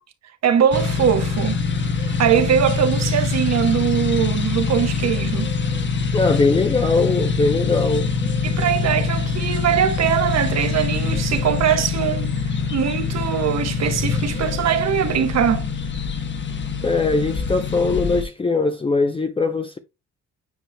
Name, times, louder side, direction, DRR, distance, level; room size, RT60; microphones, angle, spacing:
voice 1, 0.4-1.6 2.0-5.5 8.4-12.3 12.7-15.7, right 8 dB, 60° right, 1.1 m, -21 dB
sound 1, 0.7-18.2, left 5 dB, 40° left, 1.1 m, -24 dB
voice 2, 6.1-8.1 16.8-19.8, left 3 dB, 20° left, 0.6 m, -20 dB
9.3 x 4.9 x 2.2 m
cardioid pair, 90°, 30 cm